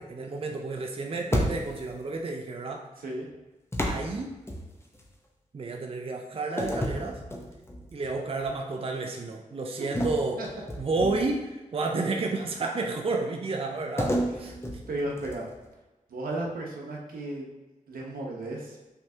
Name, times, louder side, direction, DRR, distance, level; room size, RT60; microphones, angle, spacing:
voice 1, 0.0-2.9 3.8-4.4 5.5-7.2 7.9-10.4 10.8-14.5, right 3 dB, 40° right, 2 dB, 0.5 m, -31 dB
sound 1, 1.3-2.0 3.7-5.1 6.6-7.9 8.4-8.6 9.9-11.5 14.0-15.6, equal, 15° left, 0.9 m, -31 dB
voice 2, 14.9-15.5 16.1-17.5 17.9-18.8, right 1 dB, 85° right, -1 dB, 0.9 m, -34 dB
5.9 x 3.3 x 2.8 m, 1.1 s
cardioid pair, 60°, 15 cm